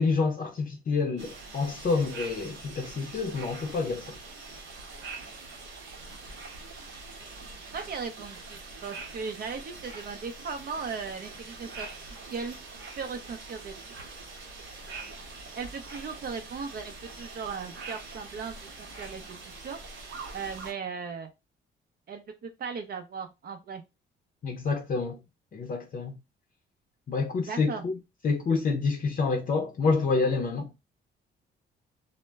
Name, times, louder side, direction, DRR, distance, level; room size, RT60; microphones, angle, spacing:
voice 1, 0.0-4.2 24.4-25.2 25.5-26.1 27.1-28.0 28.2-30.7, left 4 dB, 45° left, 0.5 m, -28 dB
sound 1, 1.2-20.7, right 3 dB, 75° right, 0.9 m, -44 dB
voice 2, 7.7-11.9 12.3-12.6 13.0-13.7 15.6-19.8 20.3-21.3 22.1-23.8 27.5-27.8, right 5 dB, 50° right, 0.5 m, -37 dB
2.1 x 2.0 x 3.3 m
cardioid pair, 90°, 20 cm